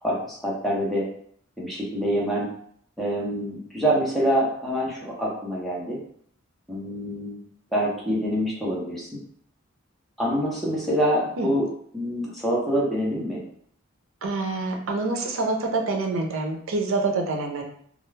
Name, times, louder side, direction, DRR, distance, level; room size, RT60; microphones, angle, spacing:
voice 1, 0.0-1.0 1.6-2.5 3.0-6.0 6.7-7.4 7.7-9.2 10.2-11.7 11.9-13.4, equal, ahead, -5 dB, 0.7 m, -26 dB
voice 2, 14.2-17.6, right 3 dB, 70° right, 2 dB, 0.5 m, -26 dB
2.3 x 2.2 x 3.2 m, 0.64 s
head